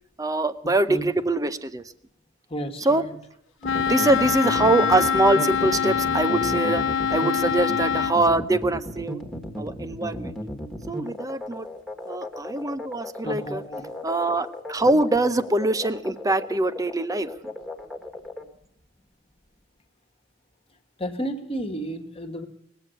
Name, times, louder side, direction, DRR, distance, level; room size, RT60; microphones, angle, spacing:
voice 1, 0.2-1.8 2.8-3.0 3.8-6.8 7.1-9.2 9.6-10.3 10.9-11.7 12.1-13.6 14.0-17.3, right 2 dB, 20° right, 12 dB, 0.6 m, -23 dB
voice 2, 2.5-3.2 13.2-13.9 21.0-22.5, right 1 dB, 30° left, 6 dB, 1.5 m, -32 dB
Wind instrument woodwind instrument, 3.6-8.2, left 7 dB, 70° left, 0.7 m, -24 dB
sound 1, 3.6-18.4, equal, ahead, 1.5 m, -35 dB
19.5 x 7.6 x 9.0 m, 0.76 s
head